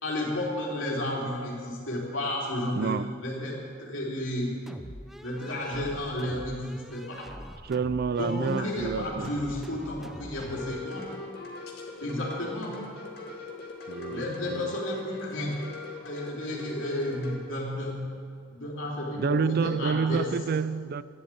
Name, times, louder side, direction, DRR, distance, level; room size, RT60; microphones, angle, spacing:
voice 1, 0.0-3.0 3.2-4.6 5.2-7.3 8.1-11.1 12.0-12.8 14.1-15.6 16.0-18.2 18.5-20.3, left 1 dB, 70° left, 3.7 m, -32 dB
voice 2, 2.7-3.1 7.6-9.3 13.9-14.7 19.2-21.0, right 5 dB, 50° right, 0.4 m, -28 dB
sound 1, 4.7-10.8, equal, ahead, 0.6 m, -44 dB
sound 2, 10.5-17.4, left 3 dB, 55° left, 2.2 m, -41 dB
12.0 x 11.0 x 8.7 m
head